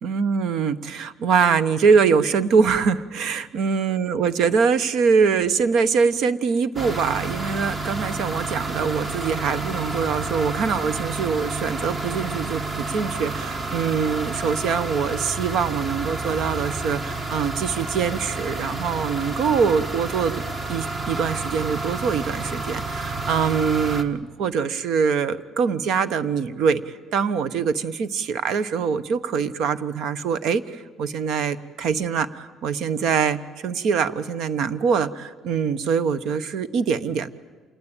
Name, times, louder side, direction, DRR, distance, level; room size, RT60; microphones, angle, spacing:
voice 1, 0.0-20.3 20.7-37.3, right 6 dB, 65° right, 15 dB, 1.0 m, -23 dB
sound 1, 6.8-24.0, right 3 dB, 25° right, 1.3 m, -30 dB
27.0 x 20.0 x 8.9 m, 1.4 s
cardioid pair, 160°, 0 cm